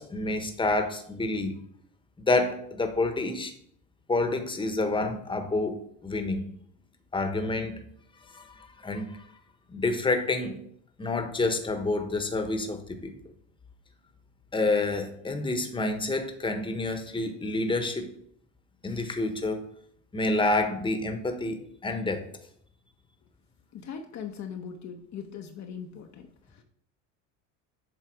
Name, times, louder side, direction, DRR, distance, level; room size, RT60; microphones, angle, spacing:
voice 1, 0.0-1.6 2.2-3.5 4.1-6.5 7.1-7.9 8.3-9.3 9.7-10.6 11.0-13.1 14.5-18.1 18.8-19.6 20.1-22.3, left 2 dB, 10° left, 6 dB, 1.1 m, -28 dB
voice 2, 23.7-26.6, left 7 dB, 45° left, 4 dB, 0.9 m, -40 dB
7.8 x 3.3 x 4.8 m, 0.65 s
supercardioid pair, 85°, 40 cm